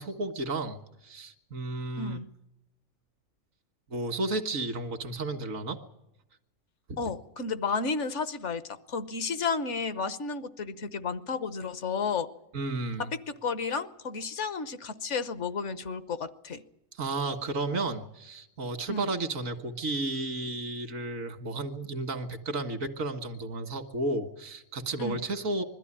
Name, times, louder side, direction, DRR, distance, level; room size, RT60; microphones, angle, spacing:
voice 1, 0.0-2.2 3.9-5.8 6.9-7.0 12.5-13.1 16.9-25.6, right 2 dB, 90° right, 7 dB, 2.0 m, -33 dB
voice 2, 2.0-2.3 7.0-12.3 13.0-16.6 18.9-19.1 25.0-25.2, left 5 dB, 65° left, 13 dB, 1.3 m, -32 dB
21.5 x 13.5 x 10.0 m, 0.92 s
omnidirectional pair, 1.3 m